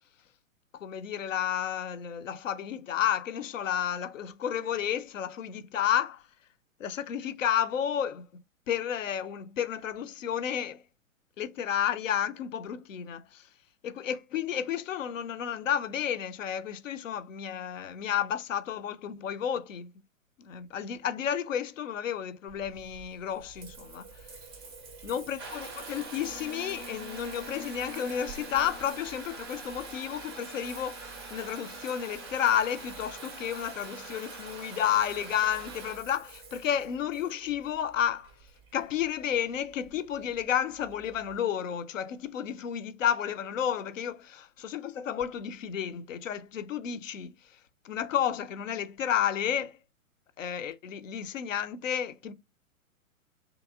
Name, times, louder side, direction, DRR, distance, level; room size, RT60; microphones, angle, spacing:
voice 1, 0.8-6.2 6.8-8.3 8.7-10.8 11.4-13.5 13.8-19.9 20.4-24.1 25.0-38.3 38.7-47.3 47.8-49.8 50.4-52.3, left 9 dB, 65° left, 0.5 m, -31 dB
Water tap faucet / Bathtub (filling or washing) / Trickle dribble, 22.5-41.4, right 3 dB, 20° right, 0.4 m, -44 dB
2.9 x 2.8 x 2.2 m
figure-of-eight pair, 120°, 42 cm